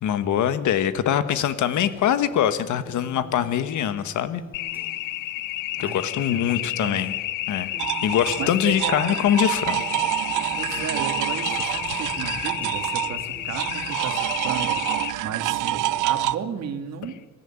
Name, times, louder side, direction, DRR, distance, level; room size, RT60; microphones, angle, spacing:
voice 1, 0.0-4.4 5.8-7.1 7.5-7.7 8.0-9.9, left 10 dB, 70° left, 12 dB, 1.4 m, -23 dB
sound 1, 1.7-5.2 5.9-6.3 7.0-7.4 7.7-11.2 11.9-12.3 12.6-13.9, equal, 5° right, 2.8 m, -48 dB
sound 2, 4.5-15.1, left 15 dB, 85° left, 0.7 m, -31 dB
voice 2, 5.8-7.0 8.4-9.2 10.6-17.2, right 7 dB, 55° right, 7 dB, 2.2 m, -34 dB
sound 3, 7.8-16.4, right 15 dB, 85° right, 0.8 m, -27 dB
24.5 x 14.0 x 8.9 m, 1.3 s
cardioid pair, 160°, 31 cm